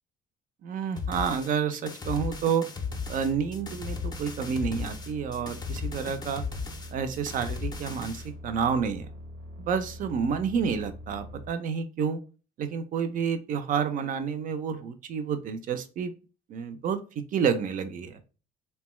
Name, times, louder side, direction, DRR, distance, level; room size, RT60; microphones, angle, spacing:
voice 1, 0.6-2.6 3.1-6.4 6.9-9.1 9.6-12.2 12.6-16.1 16.5-18.2, right 6 dB, 50° right, 9 dB, 0.4 m, -29 dB
sound 1, 1.0-8.3, left 5 dB, 25° left, 0.5 m, -36 dB
sound 2, 2.8-11.5, left 1 dB, 85° right, 0.9 m, -43 dB
2.8 x 2.2 x 3.0 m, 0.35 s
cardioid pair, 110°, 17 cm